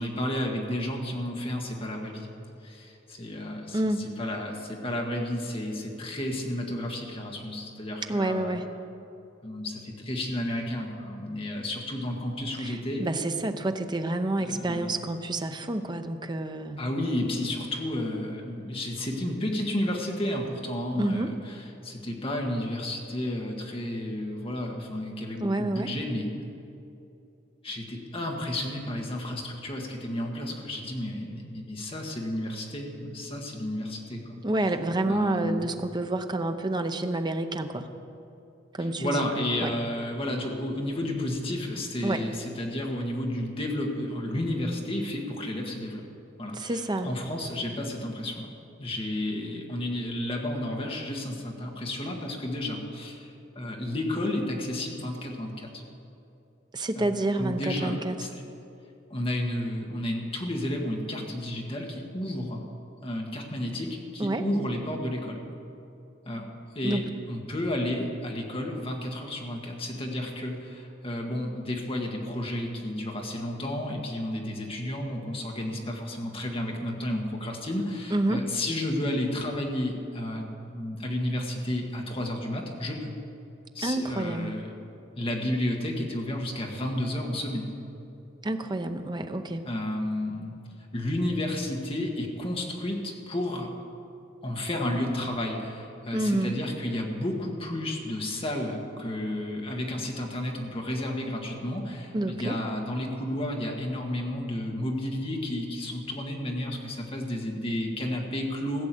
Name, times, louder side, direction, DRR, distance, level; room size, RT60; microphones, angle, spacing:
voice 1, 0.0-2.3 2.6-8.6 9.4-13.0 14.4-14.9 16.8-26.3 27.6-34.4 35.1-35.7 39.0-46.1 46.4-48.5 48.8-53.3 53.5-55.8 56.9-58.4 59.1-62.6 63.0-65.4 66.2-66.4 66.7-67.0 67.3-83.1 83.7-84.7 85.2-87.7 89.6-90.5 90.9-93.7 94.4-108.9, left 1 dB, 30° left, 1 dB, 1.6 m, -32 dB
voice 2, 3.7-4.0 8.1-8.7 12.6-16.8 21.0-21.3 25.4-25.9 34.4-37.9 38.7-39.3 39.6-39.8 42.0-42.2 46.5-47.1 56.7-58.1 64.2-64.4 66.8-67.1 78.1-78.4 83.8-84.5 88.4-89.7 96.1-96.6 102.1-102.6, right 2 dB, 25° right, 7 dB, 0.7 m, -28 dB
15.5 x 7.6 x 7.7 m, 2.8 s
head